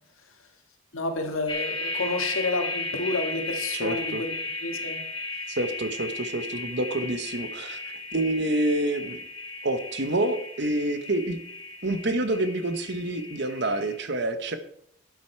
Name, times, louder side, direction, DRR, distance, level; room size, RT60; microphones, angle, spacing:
voice 1, 0.9-4.3 4.6-5.0, left 2 dB, 90° left, 5 dB, 1.8 m, -30 dB
sound 1, 1.5-14.0, left 3 dB, 25° left, 2.4 m, -35 dB
voice 2, 3.7-4.2 5.5-7.8 8.1-9.2 9.6-11.4 11.8-14.6, right 1 dB, 55° right, 9 dB, 1.0 m, -27 dB
12.5 x 9.3 x 4.5 m, 0.71 s
head